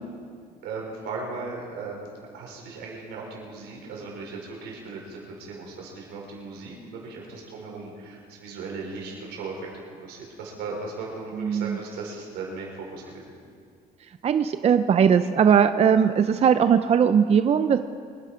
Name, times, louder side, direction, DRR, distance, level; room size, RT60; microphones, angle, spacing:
voice 1, 0.6-2.1 2.3-9.7 10.0-13.3, right 3 dB, 85° right, -1 dB, 5.0 m, -37 dB
voice 2, 11.3-11.8 14.2-17.8, right 7 dB, 40° right, 10 dB, 0.5 m, -19 dB
25.0 x 10.5 x 5.0 m, 2.1 s
cardioid pair, 110°, 17 cm